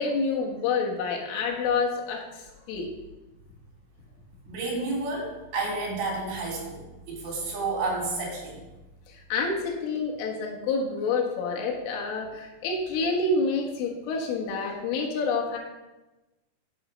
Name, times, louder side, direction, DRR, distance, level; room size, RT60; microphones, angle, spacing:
voice 1, 0.0-2.9 9.1-15.6, left 4 dB, 85° left, 0 dB, 4.1 m, -28 dB
voice 2, 4.5-8.6, right 3 dB, 65° right, -3 dB, 5.3 m, -31 dB
9.2 x 8.3 x 5.3 m, 1.1 s
omnidirectional pair, 5.5 m